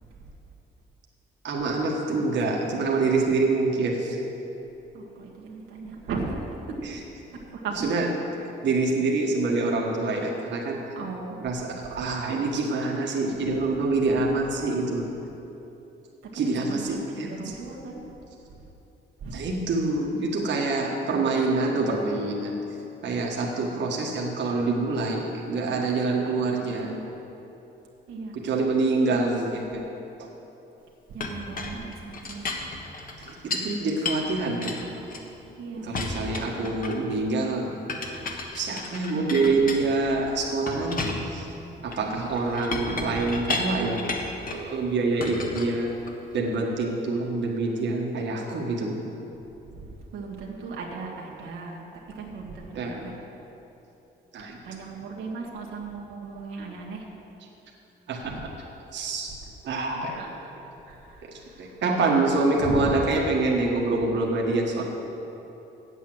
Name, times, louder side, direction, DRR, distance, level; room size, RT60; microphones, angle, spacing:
voice 1, 1.4-4.2 7.8-8.1 8.6-10.8 11.4-15.1 16.3-17.4 19.3-22.5 23.0-26.9 28.3-29.9 30.2-30.3 33.2-34.7 35.8-37.7 38.5-41.5 41.8-44.0 44.5-45.9 46.3-49.0 52.7-53.1 54.3-54.6 58.1-58.3 58.9-59.3 59.7-60.2 61.6-64.8, right 3 dB, 65° right, -1 dB, 1.5 m, -26 dB
voice 2, 4.9-6.8 7.3-7.9 10.9-11.4 13.4-13.5 16.2-18.1 18.5-18.7 19.2-19.5 26.5-27.1 28.1-28.4 29.1-29.5 31.1-32.5 35.6-36.0 36.5-36.8 39.1-39.9 42.1-42.4 43.0-43.2 49.7-51.8 52.1-53.1 54.6-57.1 58.2-58.5 60.1-60.5 60.8-63.2, right 3 dB, 85° right, -2 dB, 1.5 m, -37 dB
Chink clink, 31.2-33.7 34.1-35.5 35.9-37.2 37.9-40.2 40.7-44.7 45.2-46.4, left 3 dB, 45° left, 1.3 m, -33 dB
8.3 x 8.3 x 7.7 m, 3.0 s
cardioid pair, 90°, 20 cm